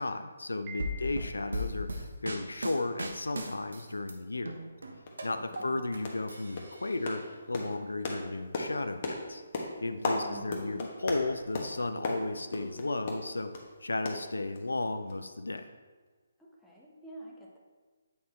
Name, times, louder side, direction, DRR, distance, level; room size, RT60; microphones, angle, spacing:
voice 1, 0.0-4.5 5.2-9.4 9.8-13.5 13.8-15.7, left 2 dB, 85° left, 9 dB, 0.5 m, -34 dB
Piano, 0.7-1.7, right 1 dB, 25° right, 0.8 m, -47 dB
sound 1, 0.8-4.1 4.5-6.0 6.3-7.2, equal, 75° right, 1.0 m, -37 dB
sound 2, 4.5-4.6 5.1-5.2 5.5-5.7 6.0-6.3 6.6-13.7 14.1-14.8 15.1-15.2 15.6-15.7, left 2 dB, 40° left, 1.2 m, -37 dB
voice 2, 5.4-6.0 10.1-10.8 16.4-17.6, right 1 dB, ahead, -5 dB, 1.2 m, -49 dB
8.5 x 4.2 x 4.3 m, 1.4 s
figure-of-eight pair, 145°, 0 cm